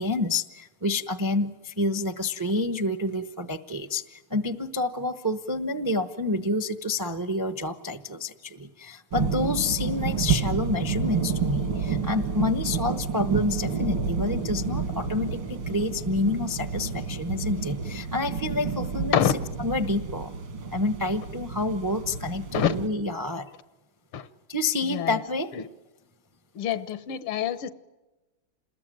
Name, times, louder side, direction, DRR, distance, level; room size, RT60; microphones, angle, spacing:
voice 1, 0.0-19.2 19.6-20.3 20.7-23.5 24.5-25.5, left 2 dB, 30° right, 11 dB, 0.3 m, -28 dB
sound 1, 9.1-22.9, right 5 dB, 75° right, 2.9 m, -30 dB
voice 2, 24.8-25.2 25.5-25.7 26.5-27.7, left 9 dB, 85° left, 15 dB, 1.9 m, -26 dB
27.5 x 20.5 x 9.2 m, 1.1 s
omnidirectional pair, 2.3 m